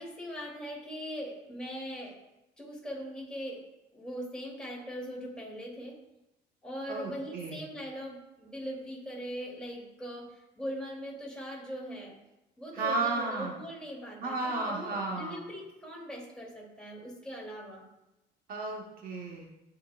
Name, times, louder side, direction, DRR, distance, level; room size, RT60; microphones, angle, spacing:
voice 1, 0.0-2.2 2.6-3.6 3.9-6.0 6.6-12.1 12.6-17.8, equal, 5° left, -4 dB, 3.2 m, -40 dB
voice 2, 6.9-7.6 12.7-13.6 14.2-15.4 18.5-19.5, right 3 dB, 60° right, 0 dB, 1.5 m, -33 dB
17.0 x 5.7 x 2.6 m, 0.95 s
cardioid pair, 110°, 17 cm